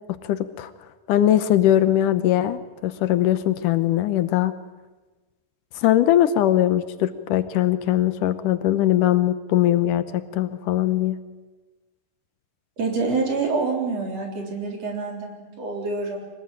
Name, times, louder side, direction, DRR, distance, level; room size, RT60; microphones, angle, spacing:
voice 1, 0.1-0.7 1.1-4.5 5.8-11.2, left 12 dB, 75° left, 12 dB, 2.4 m, -21 dB
voice 2, 12.8-16.2, right 4 dB, 50° right, 1 dB, 4.8 m, -26 dB
24.5 x 19.5 x 9.0 m, 1.2 s
omnidirectional pair, 3.8 m